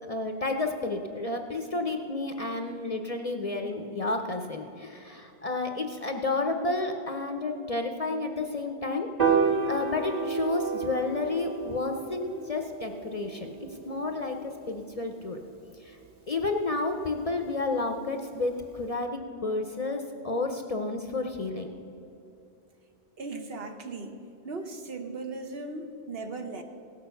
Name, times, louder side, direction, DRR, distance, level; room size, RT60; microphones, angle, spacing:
voice 1, 0.0-9.4 9.7-13.5 13.9-15.4 15.8-16.0 16.3-21.7, left 3 dB, 40° left, 5 dB, 0.6 m, -31 dB
Piano, 9.2-15.5, right 5 dB, 35° right, 1.3 m, -31 dB
voice 2, 23.2-24.2 24.4-26.6, right 3 dB, 60° right, 5 dB, 1.1 m, -37 dB
16.5 x 6.6 x 6.8 m, 2.8 s
omnidirectional pair, 1.1 m